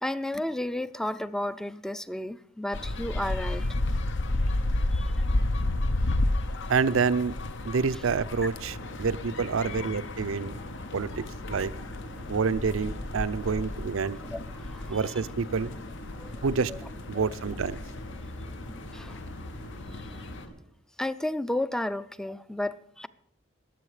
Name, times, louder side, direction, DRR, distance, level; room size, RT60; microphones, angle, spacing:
voice 1, 0.0-3.8 4.9-5.3 7.9-8.0 11.2-11.3 14.3-15.1 16.2-16.8 17.1-17.3 18.9-19.2 21.0-23.1, left 1 dB, 5° left, 0.4 m, -33 dB
sound 1, 2.7-20.5, left 2 dB, 60° left, 0.7 m, -32 dB
voice 2, 6.7-7.3 7.6-10.5 10.9-11.1 11.5-11.7 12.3-14.2 14.9-15.7 16.4-16.7 17.1-17.8, right 5 dB, 80° right, 0.5 m, -27 dB
sound 2, 8.5-20.5, equal, 90° left, 5.9 m, -45 dB
21.0 x 7.8 x 4.9 m
head